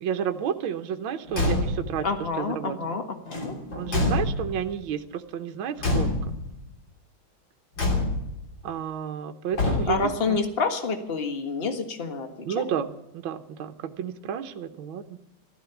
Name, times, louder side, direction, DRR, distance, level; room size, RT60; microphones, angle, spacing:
voice 1, 0.0-2.1 2.4-3.0 3.7-6.2 8.6-10.4 12.4-15.2, right 8 dB, 70° right, 7 dB, 1.7 m, -31 dB
Car / Truck / Slam, 1.3-2.0 3.3-4.7 5.8-6.6 7.8-8.4 9.5-10.2, left 2 dB, 60° left, 3.9 m, -26 dB
voice 2, 2.0-3.5 9.9-12.3, left 4 dB, 30° left, 6 dB, 1.7 m, -28 dB
14.5 x 13.5 x 7.1 m, 0.88 s
omnidirectional pair, 2.3 m